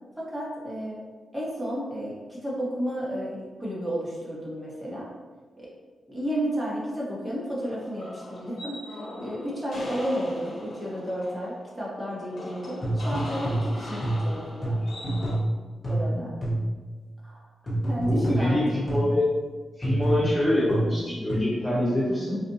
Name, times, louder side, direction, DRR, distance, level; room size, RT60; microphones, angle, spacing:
voice 1, 0.2-1.0 1.3-5.1 5.6-5.7 6.1-14.8 15.9-16.3 17.2-17.4 17.9-18.6, equal, 10° right, -6 dB, 1.2 m, -32 dB
sound 1, 7.6-15.4, left 1 dB, 65° left, 0.9 m, -40 dB
sound 2, 12.8-16.9 17.7-19.2 19.8-21.3, right 1 dB, 40° left, 1.1 m, -27 dB
voice 2, 18.0-19.3 19.8-22.4, left 1 dB, 5° left, -9 dB, 0.8 m, -25 dB
4.1 x 2.5 x 2.7 m, 1.3 s
cardioid pair, 90°, 0 cm